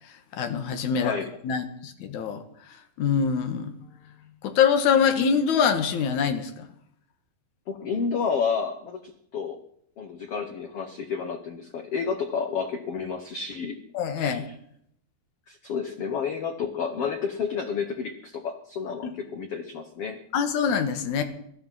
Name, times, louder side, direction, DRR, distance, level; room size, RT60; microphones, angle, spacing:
voice 1, 0.3-1.2 1.4-2.4 3.0-3.7 4.4-6.7 13.9-14.5 19.0-19.1 20.3-21.2, left 7 dB, 60° left, 8 dB, 2.5 m, -24 dB
voice 2, 1.0-1.3 7.7-9.6 10.0-13.8 14.2-14.4 15.5-20.2, left 6 dB, 85° left, 6 dB, 1.3 m, -30 dB
17.5 x 12.0 x 5.6 m, 0.70 s
omnidirectional pair, 4.5 m